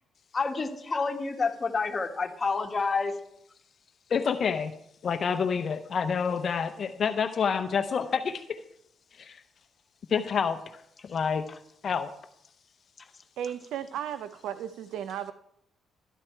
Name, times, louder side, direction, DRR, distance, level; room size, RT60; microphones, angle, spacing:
voice 1, 0.3-3.1, left 4 dB, 35° left, 4 dB, 1.6 m, -28 dB
voice 2, 4.1-4.7 5.0-8.6 9.1-9.4 10.1-11.5 11.8-12.1, left 6 dB, 50° left, 9 dB, 0.7 m, -28 dB
voice 3, 13.4-15.3, right 9 dB, 80° right, 11 dB, 0.6 m, -35 dB
13.5 x 11.0 x 4.5 m, 0.74 s
cardioid pair, 90°, 0 cm